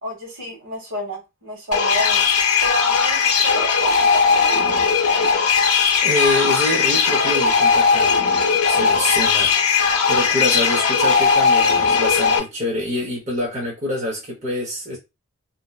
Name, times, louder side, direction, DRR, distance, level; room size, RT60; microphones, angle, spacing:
voice 1, 0.0-2.3 2.6-5.1 9.4-9.5, equal, 65° right, 1.3 m, -31 dB
sound 1, 1.7-12.4, left 5 dB, 90° left, 0.5 m, -18 dB
voice 2, 6.0-8.2 8.7-9.6 10.1-15.0, left 1 dB, 35° right, 0.8 m, -25 dB
2.6 x 2.1 x 2.3 m
head